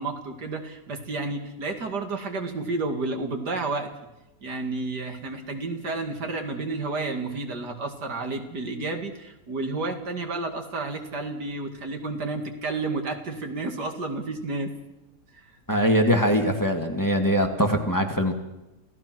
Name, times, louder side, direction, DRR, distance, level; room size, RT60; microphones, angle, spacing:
voice 1, 0.0-3.9 4.4-14.7 15.3-15.5, right 3 dB, 75° right, 5 dB, 2.8 m, -31 dB
voice 2, 15.7-18.3, equal, 10° left, 4 dB, 1.9 m, -22 dB
28.0 x 16.5 x 6.2 m, 0.97 s
omnidirectional pair, 1.8 m